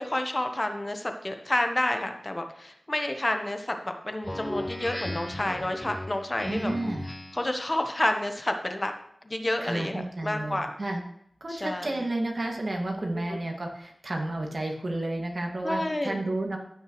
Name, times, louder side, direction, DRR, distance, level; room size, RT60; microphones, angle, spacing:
voice 1, 0.0-6.7 7.3-8.9 9.2-10.8 11.5-11.9 13.3-13.4 15.6-16.3, left 1 dB, 30° left, 5 dB, 1.1 m, -29 dB
Speech synthesizer, 4.2-7.6, left 1 dB, 10° left, 0.5 m, -36 dB
voice 2, 6.5-7.1 9.6-11.0 11.4-16.6, right 2 dB, 55° right, 1 dB, 2.1 m, -31 dB
15.0 x 6.4 x 3.2 m, 0.73 s
wide cardioid pair, 50°, 0 cm